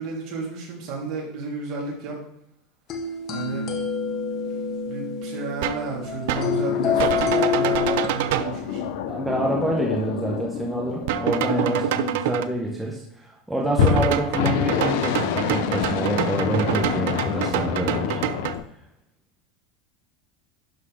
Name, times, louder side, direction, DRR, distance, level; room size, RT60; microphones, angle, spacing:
voice 1, 0.0-2.2 3.3-3.7 4.9-8.9 11.5-11.9, right 4 dB, 45° right, -3 dB, 3.2 m, -32 dB
sound 1, 2.9-8.1, left 6 dB, 30° left, 1.0 m, -27 dB
sound 2, 5.6-5.9 6.3-6.5 7.0-8.6 11.1-12.5 13.8-18.6, right 12 dB, 65° right, 0.5 m, -27 dB
sound 3, 6.3-12.7 13.7-18.6, left 8 dB, 65° left, 0.8 m, -27 dB
voice 2, 9.1-18.2, right 1 dB, 5° right, -3 dB, 1.0 m, -27 dB
11.5 x 4.2 x 5.0 m, 0.75 s
supercardioid pair, 170°, 0 cm